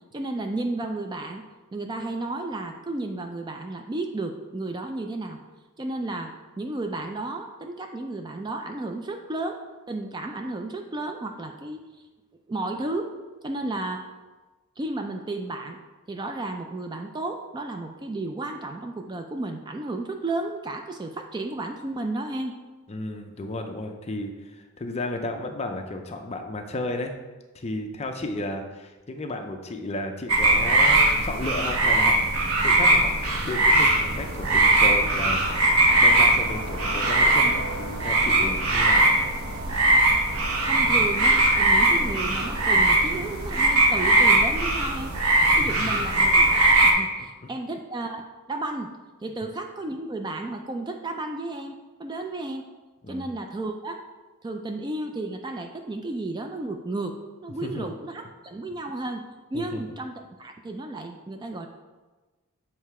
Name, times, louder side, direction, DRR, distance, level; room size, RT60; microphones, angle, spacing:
voice 1, 0.1-1.4 1.7-5.4 5.8-9.6 9.9-11.8 12.5-13.1 13.4-14.0 14.8-15.8 16.1-22.6 40.7-45.1 45.5-46.5 46.8-48.9 49.2-52.7 53.1-54.0 54.4-57.2 57.4-59.2 59.5-61.7, right 2 dB, 20° right, 4 dB, 0.3 m, -33 dB
voice 2, 22.9-27.2 27.5-33.2 33.4-39.2 45.4-46.0 47.4-47.5 53.0-53.3 57.6-57.9 59.5-59.8, left 2 dB, 30° left, 4 dB, 0.5 m, -33 dB
sound 1, 30.3-46.9, right 2 dB, 70° right, 0.9 m, -20 dB
7.4 x 3.2 x 4.7 m, 1.2 s
head